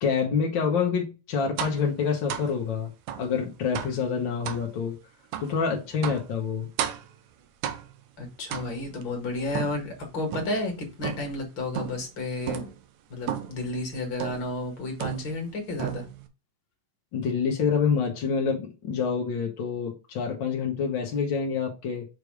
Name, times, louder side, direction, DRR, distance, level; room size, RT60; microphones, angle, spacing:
voice 1, 0.0-2.9 3.2-4.9 5.4-6.7 17.1-22.1, left 6 dB, 60° left, 1.2 m, -27 dB
sound 1, 1.6-1.9 2.3-2.5 3.1-3.3 3.8-4.0 4.5-4.7 5.3-5.6 6.0-6.3 6.8-7.2 7.6-8.0 8.5-9.0 9.5-10.6 11.0-11.4 11.8-12.1 12.5-12.8 13.3-13.6 14.2-14.5 15.0-15.5 15.8-16.3, right 10 dB, 75° right, 2.1 m, -33 dB
voice 2, 8.2-12.7 13.1-16.1, left 2 dB, 40° left, 2.2 m, -32 dB
6.6 x 3.3 x 4.7 m
omnidirectional pair, 3.5 m